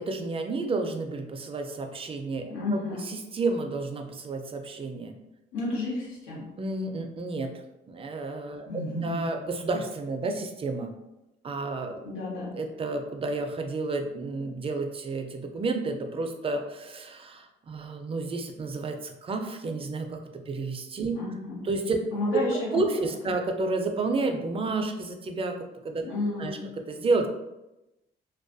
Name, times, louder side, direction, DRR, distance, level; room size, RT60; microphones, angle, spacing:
voice 1, 0.0-5.2 6.6-7.5 7.9-8.7 9.0-10.9 11.4-12.0 12.5-21.1 21.6-22.0 22.3-22.4 22.7-25.5 25.8-26.0 26.4-26.6 26.9-27.3, right 3 dB, 30° right, 4 dB, 0.4 m, -30 dB
voice 2, 2.5-3.0 5.5-6.5 8.7-9.3 12.0-12.6 21.1-21.7 22.1-22.8 26.0-26.7, left 2 dB, 85° left, -4 dB, 0.9 m, -31 dB
2.3 x 2.2 x 2.5 m, 0.94 s
cardioid pair, 90°, 20 cm